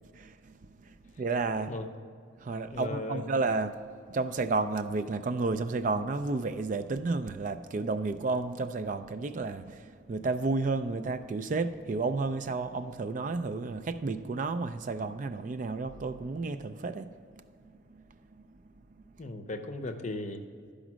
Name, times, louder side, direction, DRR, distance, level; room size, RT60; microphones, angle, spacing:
voice 1, 0.1-0.5 0.9-1.7 2.4-3.8 4.1-17.1, right 3 dB, 40° right, 0.3 m, -31 dB
voice 2, 2.7-3.3 19.2-20.4, left 2 dB, 35° left, 0.6 m, -36 dB
12.0 x 5.1 x 6.1 m
head